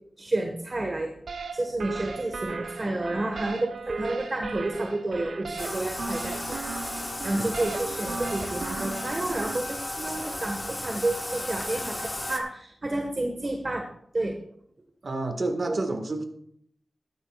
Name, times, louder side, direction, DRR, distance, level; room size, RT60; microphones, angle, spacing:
voice 1, 0.2-1.1 1.5-6.6 7.2-13.9 14.1-14.4 15.7-15.8, right 2 dB, 35° right, 3 dB, 1.4 m, -30 dB
sound 1, 1.3-9.6, right 4 dB, 80° right, 0.9 m, -36 dB
Bathtub (filling or washing), 5.6-12.4, left 1 dB, 25° left, 1.4 m, -34 dB
voice 2, 15.0-16.2, right 2 dB, 50° right, 6 dB, 1.7 m, -29 dB
14.5 x 12.0 x 2.4 m, 0.67 s
wide cardioid pair, 90°, 0 cm